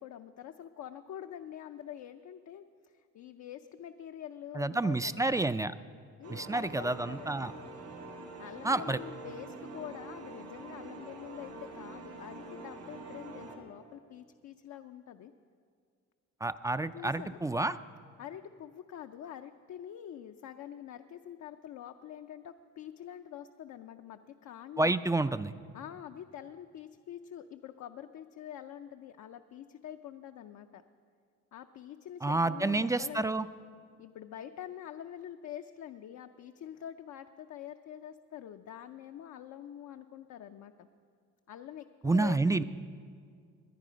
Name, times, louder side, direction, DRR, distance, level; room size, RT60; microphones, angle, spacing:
voice 1, 0.0-5.4 6.2-7.5 8.4-15.3 16.9-17.4 18.2-25.0 25.7-30.8 31.5-33.3 34.0-40.9 41.5-42.6, left 10 dB, 65° left, 6 dB, 0.6 m, -46 dB
voice 2, 4.6-5.7 6.3-7.5 8.6-9.0 16.4-17.8 24.8-25.5 32.2-33.5 42.0-42.6, right 2 dB, 10° right, 13 dB, 0.3 m, -29 dB
sound 1, 6.2-13.6, right 2 dB, 75° right, 2.8 m, -45 dB
20.5 x 9.9 x 5.1 m, 2.1 s
cardioid pair, 90°, 30 cm